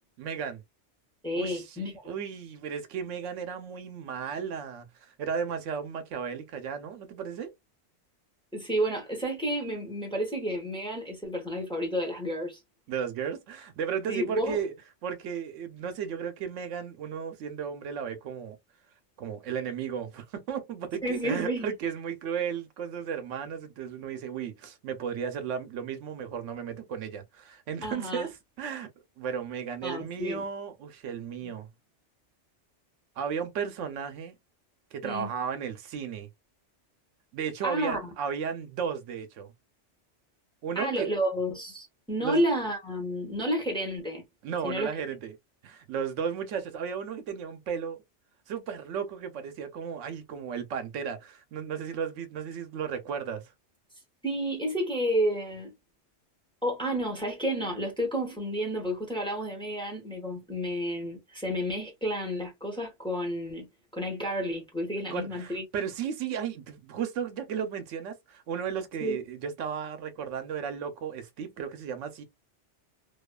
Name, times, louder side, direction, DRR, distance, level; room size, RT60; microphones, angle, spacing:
voice 1, 0.2-0.6 1.3-7.5 12.9-14.7 15.0-18.6 19.2-28.9 29.2-31.7 33.2-34.4 34.9-36.3 37.3-39.5 40.6-41.1 42.2-42.4 44.4-45.3 45.6-48.0 48.5-53.4 65.0-72.2, right 7 dB, 85° right, 1.0 m, -34 dB
voice 2, 1.2-2.0 8.5-12.6 14.1-14.6 21.0-21.7 27.8-28.3 29.8-30.5 35.0-35.3 37.6-38.1 40.7-44.2 44.6-44.9 54.2-55.7 56.6-63.7 63.9-65.6 69.0-69.2, equal, 5° left, 1.0 m, -31 dB
2.6 x 2.4 x 2.2 m
omnidirectional pair, 1.2 m